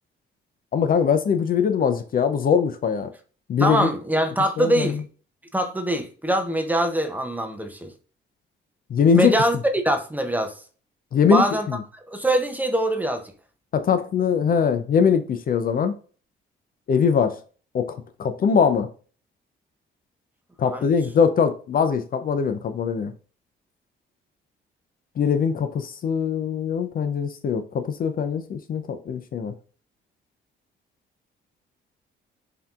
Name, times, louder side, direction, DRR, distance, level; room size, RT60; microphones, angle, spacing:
voice 1, 0.7-3.1 3.5-3.9 4.6-5.0 8.9-9.3 11.1-11.8 13.7-15.9 16.9-17.4 17.7-18.9 20.6-23.1 25.2-29.5, left 6 dB, 45° left, 0.5 m, -22 dB
voice 2, 3.6-5.0 5.5-7.9 9.1-10.5 11.3-11.7 12.1-13.2 20.6-20.8, right 1 dB, 10° right, 0.6 m, -23 dB
5.6 x 2.8 x 2.4 m
cardioid pair, 90°, 20 cm